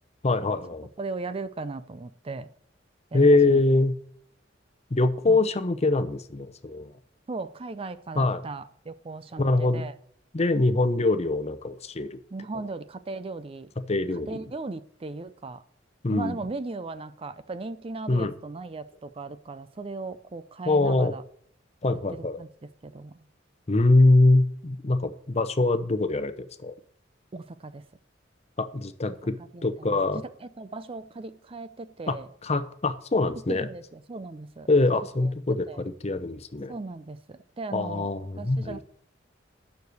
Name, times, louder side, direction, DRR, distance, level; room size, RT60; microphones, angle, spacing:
voice 1, 0.2-0.9 3.1-4.0 4.9-6.9 8.2-8.4 9.4-9.9 10.3-12.2 13.9-14.4 16.0-16.4 18.1-18.3 20.7-21.1 21.8-22.4 23.7-26.7 28.6-30.2 32.1-32.2 32.4-33.7 34.7-36.7 37.7-38.8, left 2 dB, 35° left, 12 dB, 0.7 m, -23 dB
voice 2, 1.0-2.5 3.1-3.6 5.3-5.4 7.3-9.9 12.3-13.7 14.3-15.6 16.1-21.2 22.1-22.5 22.8-23.3 27.3-27.8 29.5-32.3 33.5-34.7 35.7-35.8 36.7-38.1 38.4-38.8, right 3 dB, 30° right, 13 dB, 0.5 m, -37 dB
9.6 x 6.7 x 6.3 m, 0.64 s
head